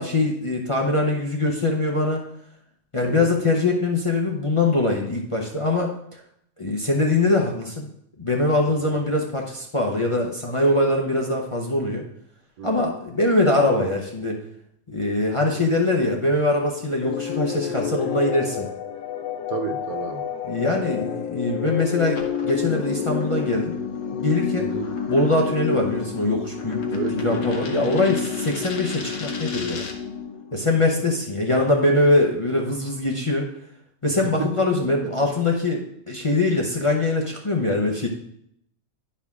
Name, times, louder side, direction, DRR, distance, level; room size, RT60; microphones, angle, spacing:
voice 1, 0.0-2.2 2.9-6.2 6.6-7.9 8.2-12.0 12.6-14.4 14.9-18.7 20.5-23.8 24.1-24.7 25.1-27.0 27.2-29.8 30.5-33.5 34.0-38.1, left 2 dB, 30° left, -1 dB, 0.7 m, -22 dB
voice 2, 8.7-9.0 12.6-12.9 19.5-20.3 24.6-24.9 26.9-28.0 34.2-35.3, right 7 dB, 80° right, 7 dB, 1.3 m, -32 dB
sound 1, 17.0-30.7, left 7 dB, 85° left, 1.1 m, -29 dB
sound 2, 22.1-30.1, left 3 dB, 60° left, 1.3 m, -40 dB
10.5 x 4.5 x 3.6 m, 0.72 s
omnidirectional pair, 1.5 m